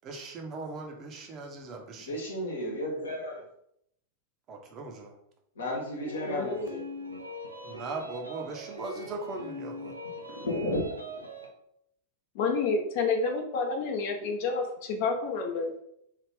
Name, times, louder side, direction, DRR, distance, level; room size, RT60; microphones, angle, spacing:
voice 1, 0.0-2.1 4.5-5.1 7.6-9.9, right 3 dB, 35° right, 2 dB, 0.6 m, -39 dB
voice 2, 2.0-3.4 5.6-6.8 10.3-10.9, left 1 dB, 65° left, -1 dB, 1.0 m, -33 dB
sound 1, 6.0-11.5, equal, 85° right, 0.5 m, -41 dB
voice 3, 6.3-6.8 12.3-15.7, left 4 dB, 50° left, 2 dB, 0.6 m, -29 dB
3.3 x 2.4 x 3.4 m, 0.74 s
figure-of-eight pair, 90°, 0 cm